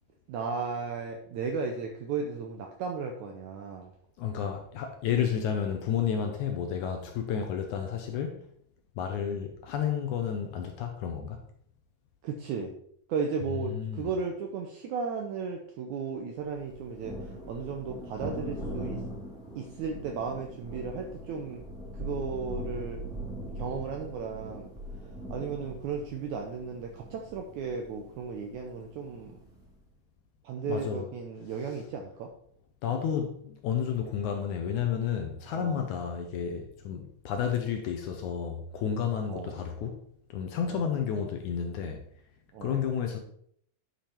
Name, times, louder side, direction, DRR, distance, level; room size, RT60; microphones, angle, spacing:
voice 1, 0.3-3.9 12.2-12.8 13.1-19.0 19.6-21.6 21.9-23.0 23.6-24.7 25.3-29.4 30.4-32.3 35.5-35.8 39.3-39.6 40.7-41.0 42.5-42.9, right 5 dB, 80° right, 3 dB, 1.8 m, -35 dB
voice 2, 4.2-8.4 9.0-11.4 13.7-14.1 30.7-31.1 32.8-40.0 40.3-42.0 42.6-43.2, left 8 dB, 75° left, 5 dB, 1.9 m, -31 dB
Thunder, 16.5-29.7, equal, ahead, 1.5 m, -41 dB
9.3 x 5.2 x 4.4 m, 0.66 s
omnidirectional pair, 4.1 m